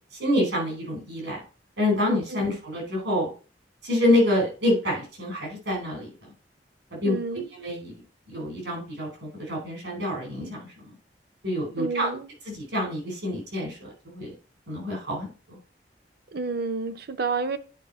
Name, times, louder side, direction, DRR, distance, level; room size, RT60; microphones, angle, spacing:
voice 1, 0.2-1.4 1.8-3.3 3.8-6.1 6.9-7.2 7.5-8.0 8.3-10.9 11.4-12.1 12.4-14.3 14.7-15.6, left 1 dB, 85° right, 4.6 m, -27 dB
voice 2, 7.1-7.5 11.8-12.3 16.3-17.6, right 4 dB, 60° right, 0.7 m, -29 dB
9.8 x 4.9 x 4.3 m
head